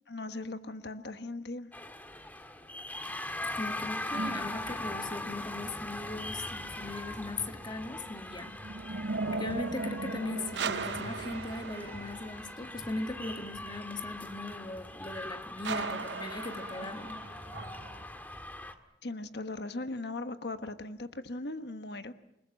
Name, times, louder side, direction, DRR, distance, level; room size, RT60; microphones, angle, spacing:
voice 1, 0.1-1.7 19.0-22.1, left 2 dB, 65° left, 1.3 m, -38 dB
sound 1, 1.7-18.7, left 1 dB, 10° left, 1.9 m, -41 dB
voice 2, 3.6-8.6 9.3-17.2, left 2 dB, 25° left, 1.9 m, -39 dB
sound 2, 4.1-5.4 7.9-12.8 15.6-18.0, right 3 dB, 85° right, 0.8 m, -38 dB
29.0 x 20.0 x 7.6 m
head